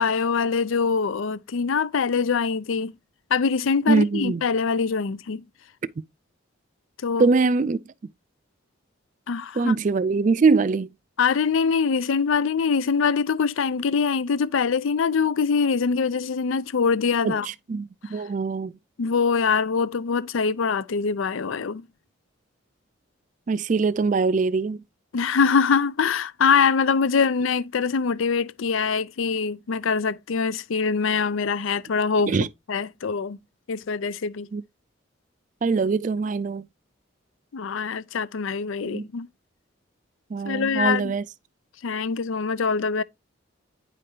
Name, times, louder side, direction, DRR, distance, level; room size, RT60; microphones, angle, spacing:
voice 1, 0.0-2.9 3.3-5.4 7.0-7.3 9.3-9.7 11.2-17.5 19.0-21.8 25.1-32.3 32.7-33.4 33.7-34.5 37.5-39.3 40.5-41.1 41.8-43.0, left 5 dB, 75° left, 0.5 m, -23 dB
voice 2, 3.9-4.4 7.2-7.8 9.6-10.9 17.2-18.8 23.5-24.8 32.3-32.5 34.5-34.6 35.6-36.7 38.8-39.0 40.3-41.3, right 4 dB, 40° right, 0.3 m, -22 dB
9.4 x 5.1 x 2.7 m
head